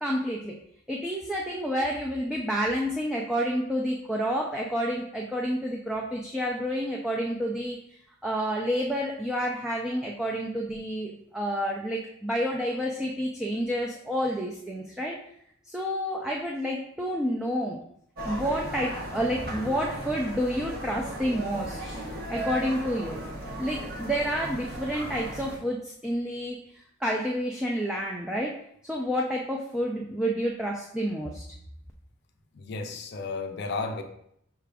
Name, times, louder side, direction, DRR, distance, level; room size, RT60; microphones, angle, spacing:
voice 1, 0.0-0.6 0.9-7.8 8.2-15.2 15.6-17.8 18.2-22.0 22.3-23.2 23.6-28.6 28.8-31.4, equal, 5° right, -2 dB, 0.3 m, -29 dB
sound 1, 18.2-25.6, right 1 dB, 50° right, 0.8 m, -36 dB
voice 2, 32.5-34.0, left 3 dB, 55° left, 6 dB, 0.5 m, -33 dB
5.7 x 2.4 x 3.4 m, 0.71 s
head